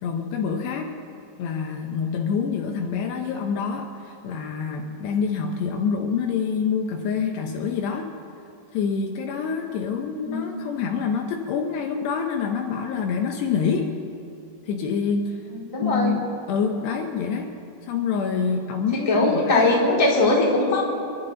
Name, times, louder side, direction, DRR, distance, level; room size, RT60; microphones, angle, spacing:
voice 1, 0.0-1.0 1.4-8.1 8.7-13.9 14.6-15.4 15.8-17.5 17.9-19.9, left 6 dB, 75° left, 3 dB, 2.9 m, -26 dB
voice 2, 15.5-16.1 18.9-20.8, left 2 dB, 10° left, -6 dB, 2.9 m, -20 dB
28.0 x 12.5 x 3.9 m, 2.6 s
omnidirectional pair, 5.2 m